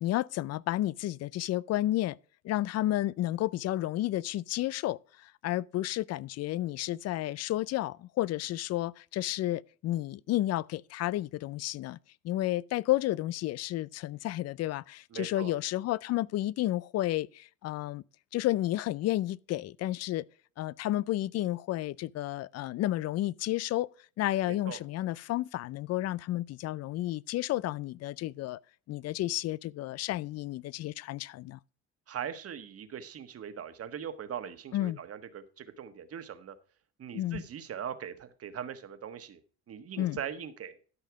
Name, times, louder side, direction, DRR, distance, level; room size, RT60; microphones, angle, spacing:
voice 1, 0.0-2.2 2.4-12.0 12.2-18.0 18.3-20.3 20.6-23.9 24.2-28.6 28.9-31.6 34.7-35.0 37.1-37.4 40.0-40.2, left 15 dB, 50° left, 0.4 m, -31 dB
voice 2, 15.1-15.5 24.5-24.8 32.1-36.6 37.0-39.4 39.7-40.8, right 8 dB, 45° right, 1.4 m, -40 dB
13.0 x 5.6 x 4.7 m
cardioid pair, 100°, 32 cm